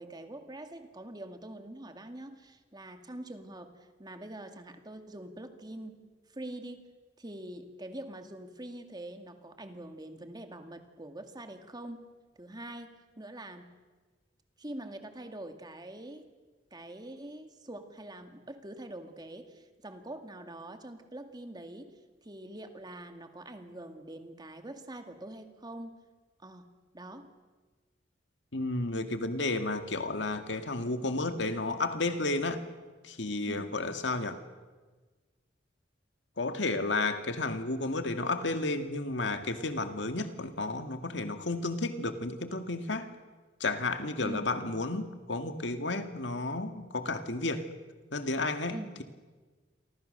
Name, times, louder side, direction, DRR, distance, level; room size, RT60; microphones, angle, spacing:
voice 1, 0.0-6.0 6.3-6.9 7.2-12.0 12.4-13.7 14.6-16.3 16.7-21.9 22.2-25.9 26.4-27.3 33.5-33.8 44.2-44.4 48.7-48.9, right 1 dB, 25° right, 6 dB, 2.2 m, -44 dB
voice 2, 28.5-32.7 33.0-34.4 36.4-43.1 43.6-47.7 48.1-49.0, left 2 dB, 75° left, 8 dB, 2.1 m, -32 dB
29.0 x 24.5 x 6.7 m, 1.3 s
head